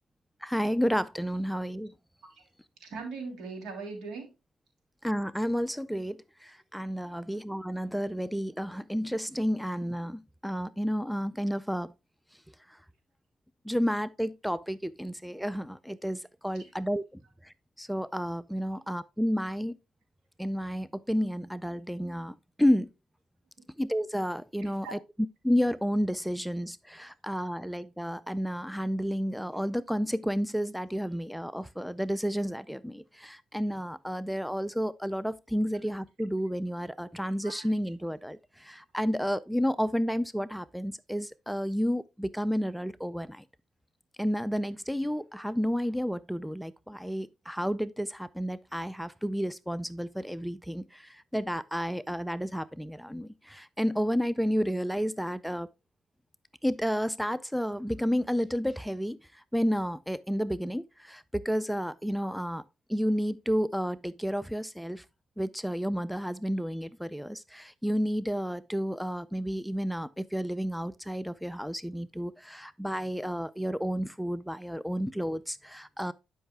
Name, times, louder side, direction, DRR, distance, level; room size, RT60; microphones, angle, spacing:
voice 1, 0.4-1.9 5.0-11.9 13.7-19.8 20.4-22.9 23.8-25.0 25.4-43.4 44.2-55.7 56.6-62.6 62.9-65.0 65.4-76.1, equal, ahead, 0.4 m, -31 dB
voice 2, 2.8-4.3 24.6-24.9 37.4-37.7, right 4 dB, 80° right, 3.0 m, -39 dB
11.5 x 5.5 x 2.3 m
cardioid pair, 90°, 0 cm